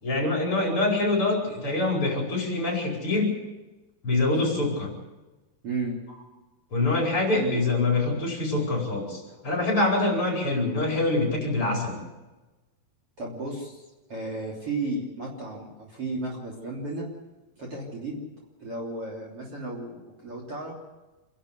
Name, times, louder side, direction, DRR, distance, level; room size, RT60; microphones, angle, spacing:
voice 1, 0.0-3.3 4.0-4.9 6.7-12.0, left 2 dB, 35° left, 0 dB, 5.4 m, -25 dB
voice 2, 5.6-6.0 7.3-7.7 13.2-13.8 14.1-17.1 17.6-18.2 18.6-20.7, right 2 dB, 35° right, -2 dB, 3.9 m, -33 dB
27.5 x 11.5 x 8.2 m, 1.1 s
omnidirectional pair, 4.4 m